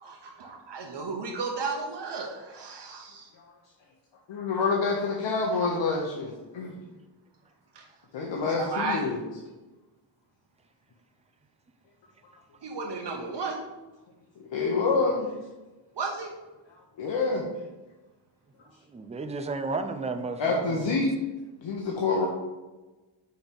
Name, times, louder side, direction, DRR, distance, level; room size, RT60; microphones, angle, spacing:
voice 1, 0.0-3.3 5.6-5.8 7.7-7.8 8.6-9.0 12.6-13.6 15.9-16.3, right 4 dB, 70° right, 0 dB, 1.0 m, -34 dB
voice 2, 4.3-6.7 8.1-9.2 14.5-15.3 17.0-17.5 20.4-21.1 21.6-22.3, left 4 dB, 85° left, -2 dB, 1.0 m, -27 dB
voice 3, 18.9-20.9, right 3 dB, 15° right, 6 dB, 0.4 m, -33 dB
5.1 x 4.5 x 5.3 m, 1.1 s
wide cardioid pair, 175°, 44 cm